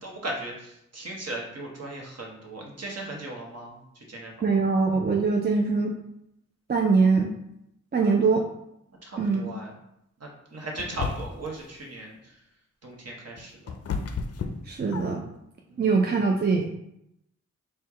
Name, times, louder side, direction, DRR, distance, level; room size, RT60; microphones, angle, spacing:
voice 1, 0.0-3.8 4.1-4.5 8.1-8.2 9.0-9.7 10.5-12.1 12.8-13.5 15.7-15.8, right 2 dB, 55° right, -1 dB, 1.0 m, -37 dB
voice 2, 4.4-5.9 6.7-7.3 7.9-8.4 9.2-9.5 14.7-15.2 15.8-16.6, right 4 dB, 35° right, 1 dB, 0.4 m, -22 dB
sound 1, 10.8-11.6 13.1-15.4, left 5 dB, 55° left, 0.4 m, -33 dB
4.4 x 2.2 x 3.5 m, 0.81 s
wide cardioid pair, 85°, 30 cm